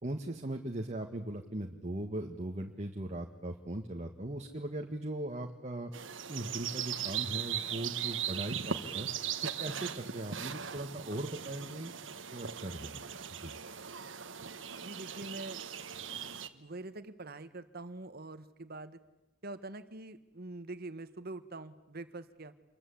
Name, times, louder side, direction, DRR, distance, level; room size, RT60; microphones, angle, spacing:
voice 1, 0.0-5.9 6.3-9.1 9.4-11.9 12.3-13.0 13.4-13.5, right 1 dB, 35° right, 3 dB, 1.8 m, -39 dB
sound 1, 5.9-16.5, right 8 dB, 70° right, 1.4 m, -39 dB
voice 2, 14.8-15.6 16.5-19.0 19.4-22.5, right 2 dB, 55° right, 12 dB, 1.6 m, -44 dB
27.5 x 22.5 x 8.6 m, 0.99 s
head